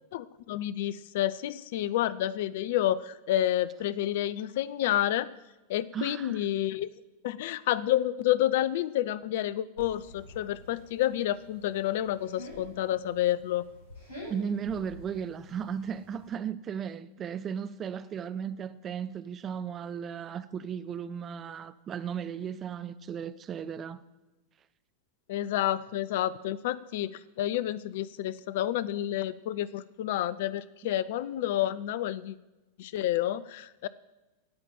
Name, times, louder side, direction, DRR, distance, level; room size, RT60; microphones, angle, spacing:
voice 1, 0.1-5.3 5.7-6.9 7.2-13.7 25.3-32.4 32.8-33.9, left 12 dB, 55° left, 0.5 m, -29 dB
voice 2, 5.9-6.5 14.3-24.0, right 7 dB, 25° right, 0.7 m, -35 dB
sound 1, 9.8-16.3, left 1 dB, 80° right, 6.4 m, -49 dB
17.5 x 5.8 x 9.1 m
figure-of-eight pair, 90°, 0 cm